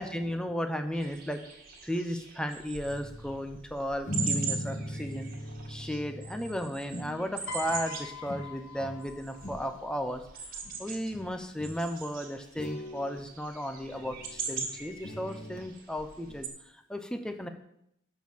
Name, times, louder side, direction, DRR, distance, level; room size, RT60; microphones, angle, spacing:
voice 1, 0.0-1.4 1.8-5.3 5.7-10.2 10.8-17.5, equal, 5° left, 6 dB, 0.8 m, -35 dB
sound 1, 0.9-16.5, right 5 dB, 45° right, 1.8 m, -41 dB
sound 2, 2.8-3.5 4.1-7.4 7.7-8.0 8.3-9.0 9.3-9.8 10.7-10.8 11.1-11.3 11.6-11.8 12.6-13.3 13.9-15.7 16.3-16.4, equal, 35° left, 1.1 m, -39 dB
Piano, 7.5-9.8 10.9-11.1, left 6 dB, 85° left, 1.2 m, -43 dB
12.0 x 4.6 x 7.3 m, 0.75 s
head